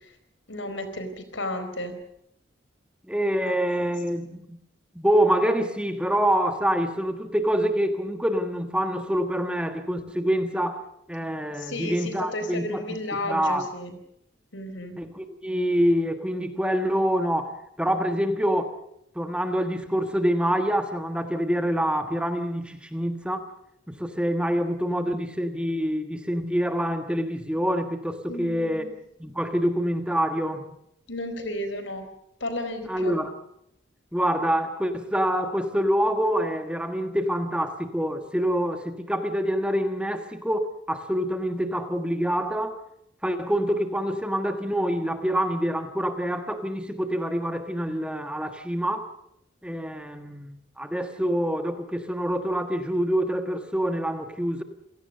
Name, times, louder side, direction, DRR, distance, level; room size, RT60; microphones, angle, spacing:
voice 1, 0.5-2.0 3.5-3.9 11.5-14.0 14.5-15.0 28.3-28.9 31.1-32.1 32.4-33.1, left 1 dB, 75° left, 4.5 m, -33 dB
voice 2, 3.1-4.6 4.9-12.8 13.2-13.7 15.0-18.7 19.1-23.5 23.9-28.8 29.2-30.6 32.9-33.4 34.1-42.8 43.2-49.1 49.6-54.6, equal, 5° right, 1.5 m, -26 dB
28.5 x 17.5 x 6.8 m
head